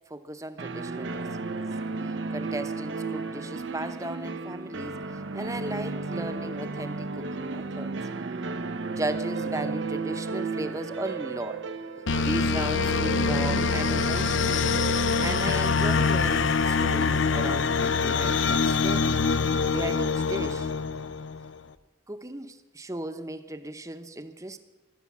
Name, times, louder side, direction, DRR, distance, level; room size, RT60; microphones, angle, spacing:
voice 1, 0.1-1.7 2.3-5.0 5.3-7.9 8.9-11.6 12.2-14.7 15.2-19.2 19.7-20.7 22.1-24.6, right 1 dB, 15° right, 9 dB, 0.8 m, -36 dB
sound 1, 0.6-17.3, right 3 dB, 70° right, 0.7 m, -34 dB
sound 2, 12.1-21.5, left 5 dB, 75° left, 0.7 m, -25 dB
15.5 x 12.5 x 7.4 m, 1.2 s
head